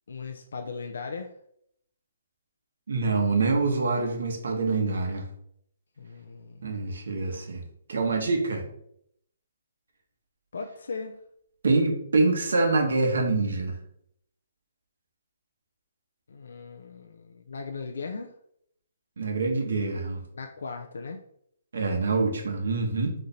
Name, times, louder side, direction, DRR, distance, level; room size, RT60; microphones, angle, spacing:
voice 1, 0.1-1.3 6.0-6.7 10.5-11.2 16.3-18.3 20.3-21.2, left 4 dB, 65° left, 3 dB, 0.5 m, -38 dB
voice 2, 2.9-5.2 6.6-7.6 7.9-8.6 11.6-13.7 19.2-20.2 21.7-23.1, right 3 dB, 65° right, 2 dB, 1.2 m, -25 dB
3.9 x 3.3 x 4.1 m, 0.70 s
hypercardioid pair, 180°, 0 cm